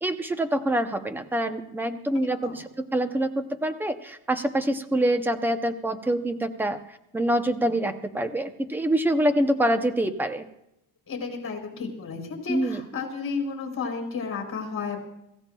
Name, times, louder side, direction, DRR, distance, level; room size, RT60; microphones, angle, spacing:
voice 1, 0.0-10.5 12.5-12.8, right 1 dB, 5° right, 9 dB, 0.6 m, -26 dB
voice 2, 2.2-2.7 11.1-15.0, left 5 dB, 30° left, 2 dB, 4.9 m, -32 dB
26.0 x 16.0 x 2.3 m, 0.83 s
cardioid pair, 155°, 42 cm